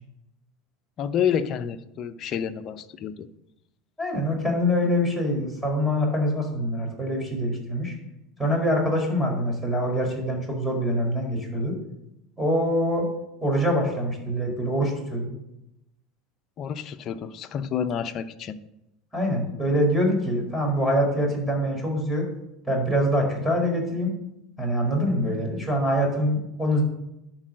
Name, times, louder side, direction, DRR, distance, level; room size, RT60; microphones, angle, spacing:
voice 1, 1.0-3.3 16.6-18.6, left 8 dB, 45° left, 10 dB, 0.7 m, -29 dB
voice 2, 4.0-7.9 8.4-11.7 12.4-13.0 13.4-15.3 19.1-22.2 22.7-24.1 24.6-26.8, equal, ahead, 0 dB, 4.7 m, -24 dB
11.5 x 4.8 x 7.8 m, 0.88 s
hypercardioid pair, 95°, 0 cm